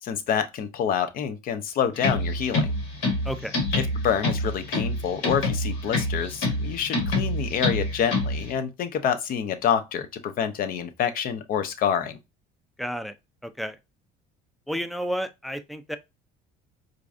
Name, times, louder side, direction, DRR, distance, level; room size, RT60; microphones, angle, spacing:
voice 1, 0.0-2.7 3.7-12.2, left 8 dB, 50° left, 0.7 m, -27 dB
sound 1, 2.0-8.5, left 2 dB, 80° left, 1.5 m, -27 dB
voice 2, 3.3-3.6 12.8-13.1 13.4-13.8 14.7-16.0, equal, ahead, 0.3 m, -31 dB
4.5 x 2.6 x 2.4 m
cardioid pair, 125°, 19 cm